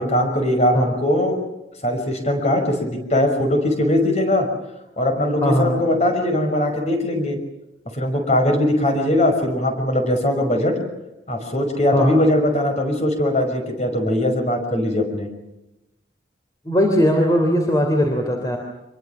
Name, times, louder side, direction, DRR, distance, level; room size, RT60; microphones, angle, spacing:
voice 1, 0.0-1.4 1.8-4.5 5.0-7.4 7.9-10.8 11.3-15.3, left 1 dB, 35° left, 5 dB, 5.8 m, -20 dB
voice 2, 5.4-5.8 11.9-12.2 16.6-18.6, equal, 20° left, 2 dB, 3.2 m, -19 dB
26.0 x 22.5 x 7.4 m, 0.93 s
head